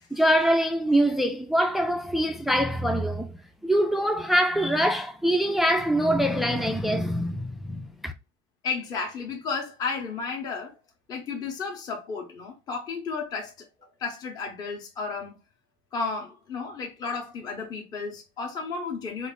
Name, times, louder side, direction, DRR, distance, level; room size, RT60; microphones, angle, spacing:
voice 1, 0.1-8.1, equal, ahead, 0.3 m, -24 dB
voice 2, 8.6-10.8 11.1-13.5 14.0-15.3 15.9-19.3, left 4 dB, 35° left, 0.7 m, -33 dB
3.1 x 2.4 x 3.6 m
cardioid pair, 145°, 12 cm